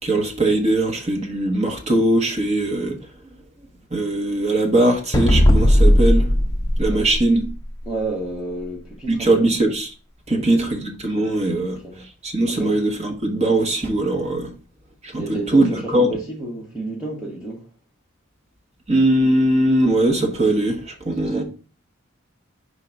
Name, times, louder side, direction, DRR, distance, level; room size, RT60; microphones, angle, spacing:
voice 1, 0.0-3.0 3.9-6.3 6.8-7.4 9.1-9.9 10.3-14.5 15.0-16.1 18.9-21.4, right 1 dB, 30° right, 1.3 m, -20 dB
sound 1, 5.1-7.8, left 1 dB, 15° left, 0.6 m, -16 dB
voice 2, 7.9-9.5 10.3-10.7 11.5-11.9 12.6-12.7 15.2-17.7 21.2-21.4, right 2 dB, 5° right, 1.2 m, -31 dB
4.8 x 3.9 x 5.7 m
head